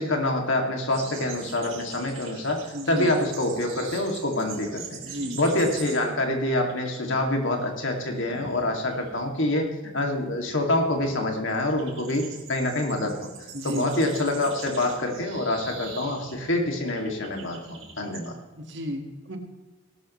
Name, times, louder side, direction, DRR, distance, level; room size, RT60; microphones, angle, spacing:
voice 1, 0.0-13.3 13.6-18.3, left 1 dB, 70° left, 2 dB, 2.5 m, -26 dB
sound 1, 0.9-6.3 6.5-6.9 7.2-18.3, right 5 dB, 75° right, 3.6 m, -43 dB
voice 2, 2.7-3.1 5.1-5.4 13.5-13.9 18.7-19.4, equal, 55° right, 4 dB, 1.8 m, -32 dB
17.5 x 12.5 x 3.2 m, 1.2 s
head